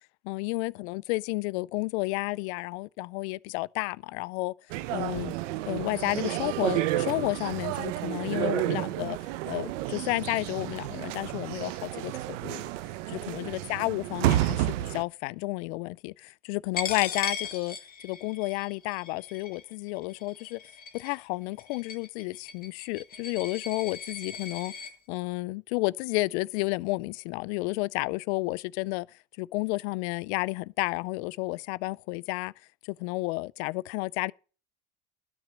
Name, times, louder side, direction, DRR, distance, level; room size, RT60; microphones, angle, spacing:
voice 1, 0.2-4.5 4.9-5.3 5.7-9.2 9.5-12.1 12.4-12.7 13.1-17.8 18.0-20.6 20.9-24.7 25.1-29.1 29.4-32.5 32.8-34.3, left 23 dB, 65° left, 0.5 m, -31 dB
sound 1, 4.7-15.0, right 15 dB, 85° right, 0.9 m, -31 dB
Coin (dropping), 16.8-24.9, left 6 dB, 25° left, 1.5 m, -38 dB
12.5 x 6.2 x 6.4 m
supercardioid pair, 150°, 36 cm